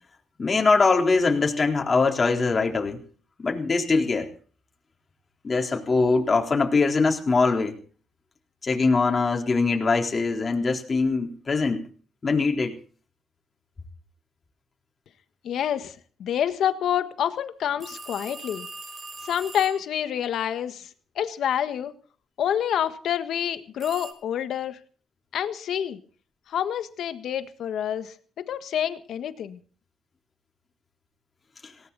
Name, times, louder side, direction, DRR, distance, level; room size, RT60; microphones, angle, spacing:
voice 1, 0.4-3.0 3.4-4.3 5.4-7.8 8.6-11.8 12.2-12.8 31.6-31.7, left 4 dB, 35° left, 2 dB, 3.8 m, -22 dB
voice 2, 15.4-18.7 19.2-20.9 21.1-21.9 22.4-24.8 25.3-26.0 26.5-29.6, left 9 dB, 70° left, 10 dB, 1.5 m, -28 dB
sound 1, 17.8-19.9 23.8-24.1, right 3 dB, 30° right, 5.8 m, -40 dB
18.5 x 18.0 x 4.1 m, 0.43 s
cardioid pair, 90°, 0 cm